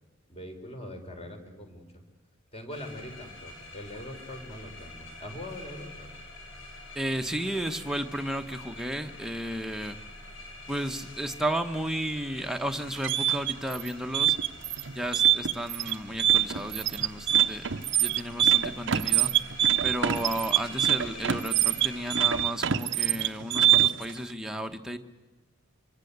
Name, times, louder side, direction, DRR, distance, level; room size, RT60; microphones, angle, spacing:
voice 1, 0.3-2.0 2.5-6.1, left 1 dB, 30° left, 5 dB, 3.7 m, -42 dB
sound 1, 2.7-22.4, left 2 dB, 70° left, 6.9 m, -46 dB
voice 2, 6.9-10.0 10.7-14.4 14.9-17.7 18.0-19.4 19.8-25.0, right 1 dB, ahead, 5 dB, 1.2 m, -33 dB
sound 2, 12.8-24.1, right 11 dB, 60° right, 0.8 m, -24 dB
25.5 x 25.0 x 8.2 m, 1.2 s
head